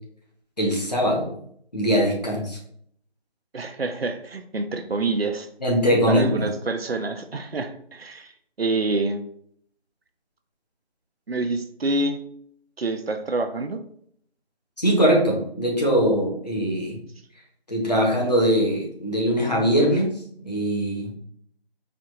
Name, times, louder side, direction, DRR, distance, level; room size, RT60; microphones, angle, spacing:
voice 1, 0.6-1.3 1.7-2.6 5.6-6.5 14.8-17.0 17.7-20.1 20.4-21.1, equal, 40° left, -3 dB, 1.3 m, -21 dB
voice 2, 3.5-5.5 6.1-8.3 8.6-9.2 11.3-12.2 12.8-13.8, right 2 dB, 65° right, 7 dB, 0.6 m, -27 dB
4.4 x 2.5 x 3.8 m, 0.65 s
figure-of-eight pair, 180°, 32 cm